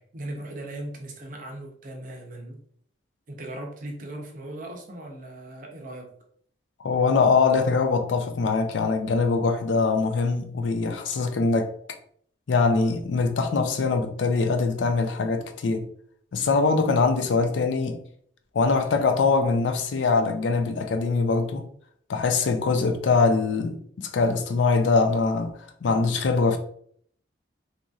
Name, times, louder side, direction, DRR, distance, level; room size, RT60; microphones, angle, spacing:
voice 1, 0.0-2.6 3.3-6.1 18.7-18.9, right 1 dB, 45° right, 0.5 m, -38 dB
voice 2, 6.8-11.7 12.5-15.9 16.3-18.0 18.5-21.7 22.1-26.6, left 4 dB, 75° left, 0.4 m, -23 dB
2.8 x 2.6 x 2.3 m
head